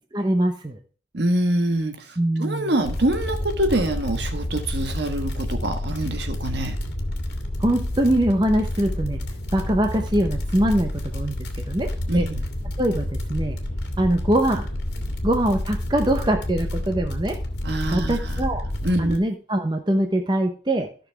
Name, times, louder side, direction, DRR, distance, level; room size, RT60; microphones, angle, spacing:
voice 1, 0.1-0.8 2.2-2.7 7.6-9.2 9.5-12.3 12.8-13.6 14.0-14.7 15.2-17.4 17.9-18.6 19.0-20.9, right 1 dB, 25° right, 4 dB, 0.9 m, -23 dB
voice 2, 1.1-6.8 12.1-12.4 17.6-18.4 18.8-19.2, right 1 dB, 60° right, 6 dB, 1.4 m, -25 dB
sound 1, 2.8-19.2, left 1 dB, 60° left, 1.9 m, -29 dB
13.0 x 6.3 x 3.4 m, 0.38 s
head